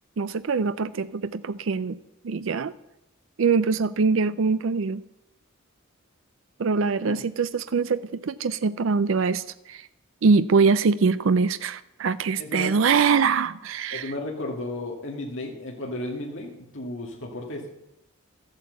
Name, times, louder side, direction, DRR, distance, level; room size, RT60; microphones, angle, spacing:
voice 1, 0.2-2.0 2.2-2.7 3.4-5.0 6.6-9.9 10.2-14.1, right 5 dB, 70° right, 14 dB, 0.5 m, -23 dB
voice 2, 12.4-12.7 13.9-17.7, left 2 dB, 60° left, -1 dB, 2.1 m, -34 dB
13.0 x 8.9 x 8.0 m, 0.85 s
head